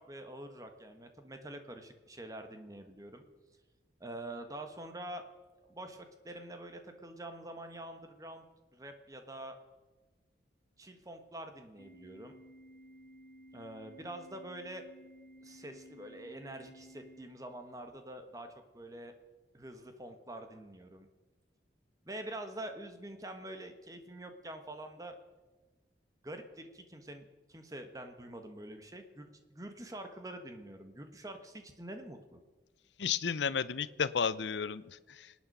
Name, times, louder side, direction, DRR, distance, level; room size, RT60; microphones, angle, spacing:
voice 1, 0.0-3.2 4.0-5.2 5.7-8.5 8.7-9.6 10.8-12.3 13.5-14.8 15.4-18.5 18.7-19.1 19.5-21.1 22.0-25.2 26.2-32.4, right 1 dB, 20° right, 6 dB, 1.3 m, -46 dB
Organ, 11.8-17.8, equal, 65° left, 2.2 m, -56 dB
voice 2, 33.0-35.3, left 6 dB, 85° left, 17 dB, 0.6 m, -33 dB
26.0 x 9.3 x 5.5 m, 1.3 s
head